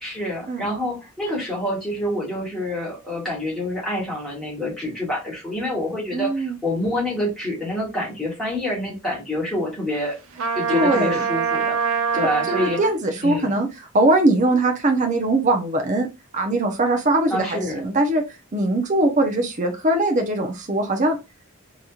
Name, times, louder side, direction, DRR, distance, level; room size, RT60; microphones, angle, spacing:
voice 1, 0.0-10.2 10.6-12.8 13.2-13.6 17.3-17.8, left 1 dB, ahead, -6 dB, 2.1 m, -27 dB
voice 2, 6.1-6.6 10.7-11.2 12.1-13.7 13.9-16.1 16.3-18.2 18.5-21.2, right 2 dB, 35° right, 4 dB, 0.7 m, -21 dB
Trumpet, 10.4-12.9, right 6 dB, 75° right, 0.6 m, -24 dB
4.1 x 2.9 x 2.4 m, 0.25 s
head